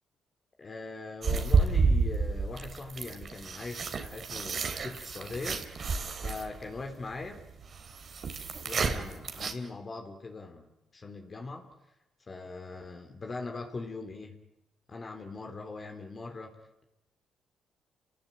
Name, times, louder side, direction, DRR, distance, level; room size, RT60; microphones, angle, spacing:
voice 1, 0.6-5.6 6.2-7.5 8.7-11.7 12.3-14.4 14.9-16.6, left 3 dB, 35° left, 4 dB, 3.7 m, -41 dB
sound 1, 1.2-9.5, right 4 dB, 50° right, 3.3 m, -30 dB
29.5 x 19.0 x 8.7 m, 0.92 s
cardioid pair, 90°, 0 cm